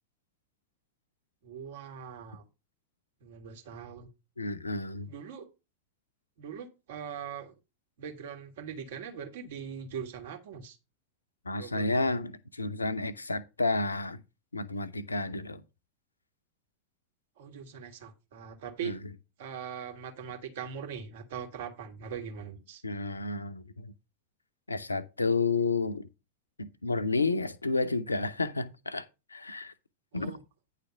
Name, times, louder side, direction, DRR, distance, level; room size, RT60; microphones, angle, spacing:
voice 1, 1.4-2.4 3.2-4.1 5.1-5.5 6.4-7.5 8.0-10.8 11.6-12.2 17.4-19.0 19.4-22.8 30.1-30.4, right 7 dB, 55° right, 1.7 m, -41 dB
voice 2, 4.4-5.1 11.4-14.2 14.5-15.6 18.8-19.0 22.8-23.9 24.7-26.1 26.6-29.7 30.1-30.4, left 3 dB, 80° left, 0.6 m, -31 dB
9.8 x 3.4 x 7.0 m
figure-of-eight pair, 90°, 0 cm